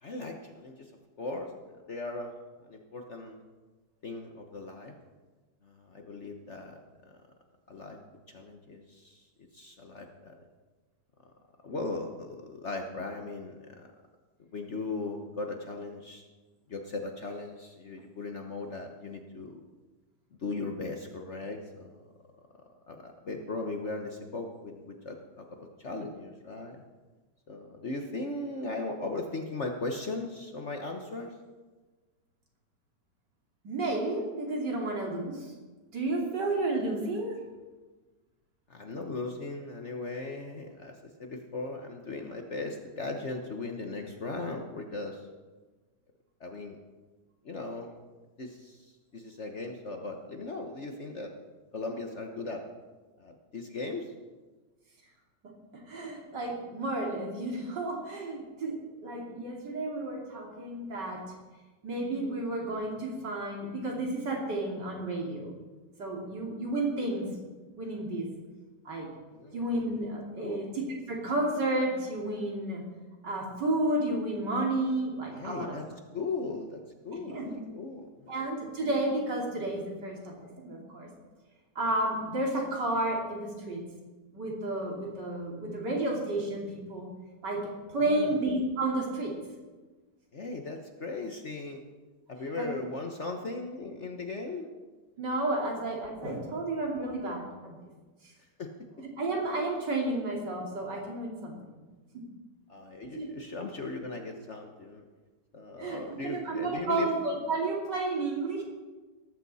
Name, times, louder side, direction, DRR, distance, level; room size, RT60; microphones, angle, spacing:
voice 1, 0.0-0.9 1.2-2.3 2.6-3.4 4.0-4.9 5.6-6.8 7.7-8.0 8.3-9.2 9.5-10.4 11.6-13.9 14.5-16.2 16.7-19.6 20.4-22.1 22.9-25.5 25.8-26.8 27.5-31.3 38.7-45.3 46.4-46.8 47.4-47.9 48.4-51.3 51.7-52.6 53.2-54.1 69.3-69.7 70.4-70.6 75.3-75.8 76.1-76.8 77.0-78.3 87.9-88.3 90.3-91.8 92.3-94.7 98.6-98.7 102.7-105.0 105.5-107.1, left 3 dB, 45° left, 3 dB, 1.3 m, -38 dB
voice 2, 33.6-35.5 35.9-37.4 55.7-61.2 61.8-65.5 66.0-67.3 67.8-68.3 68.8-69.1 69.5-72.9 73.2-75.8 77.3-77.5 78.3-81.1 81.7-83.8 84.3-87.1 87.4-87.6 87.9-89.3 92.6-92.7 95.2-97.8 99.2-101.5 102.1-102.2 103.1-103.3 105.8-108.6, right 2 dB, 85° right, -1 dB, 3.4 m, -31 dB
18.0 x 14.5 x 4.2 m, 1.3 s
omnidirectional pair, 1.8 m